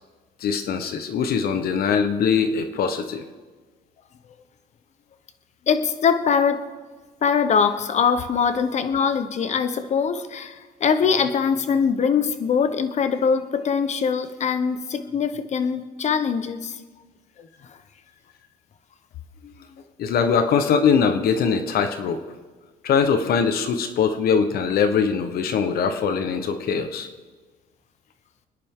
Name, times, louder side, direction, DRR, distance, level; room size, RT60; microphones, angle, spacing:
voice 1, 0.4-3.2 20.0-22.2 22.8-27.1, left 6 dB, 65° left, 8 dB, 1.2 m, -22 dB
voice 2, 5.7-6.6 7.2-16.7 17.4-17.5, left 6 dB, 45° left, 10 dB, 1.1 m, -22 dB
27.5 x 10.5 x 3.8 m, 1.4 s
cardioid pair, 110°, 17 cm